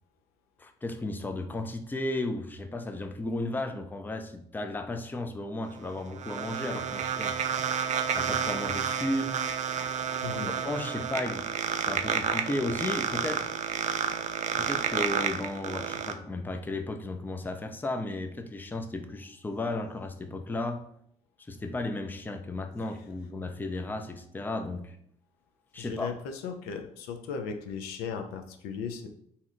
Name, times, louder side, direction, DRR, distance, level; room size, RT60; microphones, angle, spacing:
voice 1, 0.6-7.4 8.1-9.4 10.5-13.5 14.6-20.8 21.5-25.0 25.7-26.2, left 2 dB, 10° left, 7 dB, 0.4 m, -34 dB
sound 1, 5.7-16.1, right 7 dB, 50° right, 0.4 m, -30 dB
voice 2, 10.2-10.5 25.8-29.1, left 6 dB, 75° left, 6 dB, 0.4 m, -36 dB
2.7 x 2.1 x 3.7 m, 0.69 s
hypercardioid pair, 60°, 16 cm